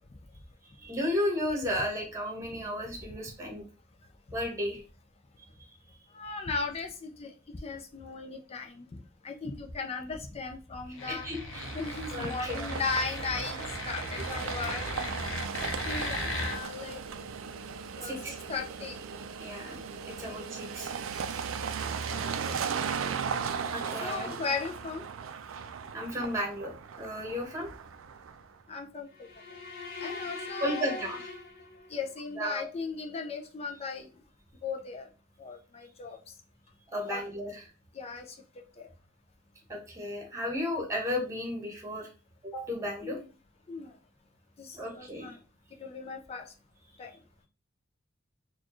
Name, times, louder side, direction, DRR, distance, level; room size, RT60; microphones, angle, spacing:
voice 1, 0.8-3.6 4.3-4.8 11.1-11.4 12.1-12.7 14.3-14.4 18.0-18.3 19.4-19.8 20.0-20.9 23.7-24.3 25.9-27.7 30.6-31.2 32.3-32.7 36.9-37.6 39.7-42.1 42.4-43.2 44.7-45.4, left 1 dB, 15° right, 0 dB, 1.1 m, -34 dB
voice 2, 6.1-11.2 11.7-15.2 15.8-17.0 17.9-18.2 18.5-19.0 20.2-20.5 21.1-21.4 22.0-22.4 23.9-25.1 28.7-29.3 30.0-31.0 31.9-34.2 34.6-35.1 35.4-36.2 37.1-37.2 37.9-38.4 38.8-38.9 43.0-43.3 43.7-44.0 44.6-45.4 45.8-46.5 47.0-47.2, left 4 dB, 30° left, 3 dB, 0.5 m, -37 dB
sound 1, 10.9-16.6, left 2 dB, 70° left, 0.9 m, -37 dB
sound 2, 11.5-28.5, right 6 dB, 75° right, 0.4 m, -37 dB
sound 3, 29.1-32.2, left 3 dB, 50° left, 0.9 m, -42 dB
4.2 x 2.4 x 3.0 m, 0.34 s
head